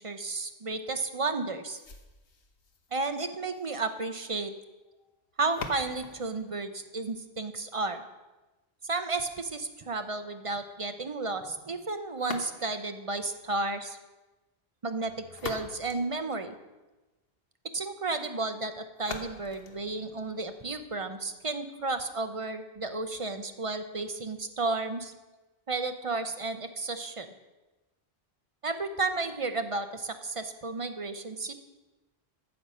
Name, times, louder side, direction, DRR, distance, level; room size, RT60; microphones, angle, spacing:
voice 1, 0.0-1.8 2.9-4.5 5.4-8.0 8.8-14.0 14.8-16.5 17.7-25.1 25.7-27.3 28.6-31.5, right 3 dB, 35° right, 8 dB, 0.6 m, -33 dB
sound 1, 1.8-7.7 12.1-13.0 15.0-17.0 19.0-21.0, left 4 dB, 65° left, 1.2 m, -45 dB
14.5 x 6.3 x 5.5 m, 1.1 s
omnidirectional pair, 1.1 m